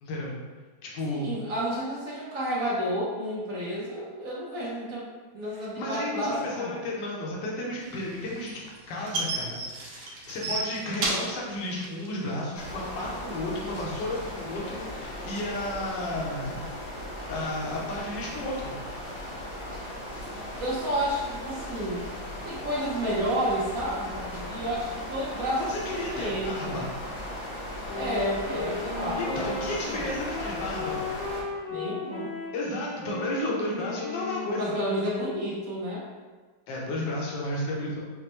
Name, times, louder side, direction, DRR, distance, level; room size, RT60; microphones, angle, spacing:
voice 1, 0.0-0.4 0.8-1.3 5.8-8.5 8.9-16.7 17.3-18.7 25.5-26.9 29.2-31.0 32.5-34.7 36.7-38.0, left 1 dB, 70° left, -3 dB, 1.4 m, -33 dB
voice 2, 1.1-5.1 5.3-6.9 19.7-19.8 20.6-22.1 22.4-25.6 26.1-26.8 27.9-29.4 29.9-30.2 31.7-32.4 34.6-36.1, equal, 60° right, -6 dB, 1.0 m, -31 dB
sound 1, 7.9-12.9, right 2 dB, 85° right, 1.5 m, -32 dB
sound 2, 12.5-31.4, equal, 90° left, 1.8 m, -37 dB
Wind instrument woodwind instrument, 27.8-35.9, left 4 dB, 35° left, 0.9 m, -36 dB
5.3 x 2.1 x 2.9 m, 1.3 s
omnidirectional pair, 2.1 m